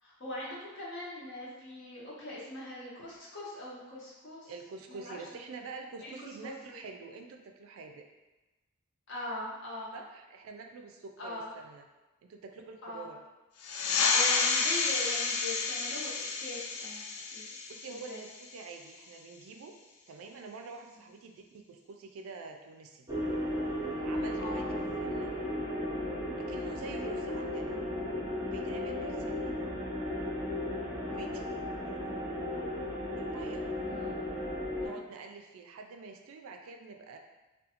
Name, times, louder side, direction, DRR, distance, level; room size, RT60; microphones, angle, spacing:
voice 1, 0.0-4.5 4.9-5.2 6.0-6.1 6.4-6.8 9.1-10.0 11.2-11.5 12.8-13.1 14.1-17.0 17.3-17.5 18.1-18.2 24.4-24.7 31.0-31.4 33.9-34.1 34.8-35.0, left 1 dB, 60° left, -6 dB, 0.8 m, -41 dB
voice 2, 4.5-8.0 9.9-11.8 12.3-13.2 14.2-14.5 17.7-19.7 20.1-23.1 24.0-25.3 26.4-27.8 28.4-29.5 31.0-31.4 31.8-32.2 33.1-33.7 34.8-37.2, right 4 dB, 70° right, 3 dB, 0.3 m, -46 dB
sound 1, 13.6-18.7, left 4 dB, 85° left, 0.3 m, -30 dB
sound 2, 23.1-34.9, left 1 dB, 15° right, 0.6 m, -35 dB
2.4 x 2.3 x 2.8 m, 1.1 s
head